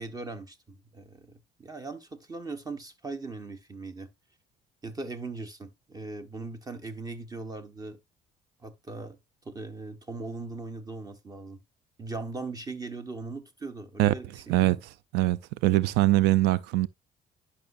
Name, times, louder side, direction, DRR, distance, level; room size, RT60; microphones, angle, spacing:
voice 1, 0.0-4.1 4.8-8.0 8.6-9.2 9.4-11.6 12.0-14.3, right 3 dB, 20° right, 1.3 m, -39 dB
voice 2, 14.0-16.9, right 16 dB, 85° right, 0.4 m, -24 dB
11.0 x 5.8 x 2.5 m
cardioid pair, 110°, 17 cm